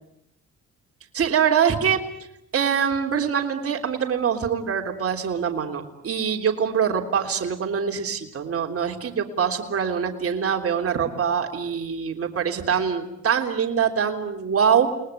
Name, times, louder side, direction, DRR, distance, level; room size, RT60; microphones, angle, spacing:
voice 1, 1.1-2.0 2.5-14.9, right 7 dB, 50° right, 3 dB, 3.5 m, -24 dB
29.5 x 20.5 x 9.8 m, 0.82 s
cardioid pair, 90°, 30 cm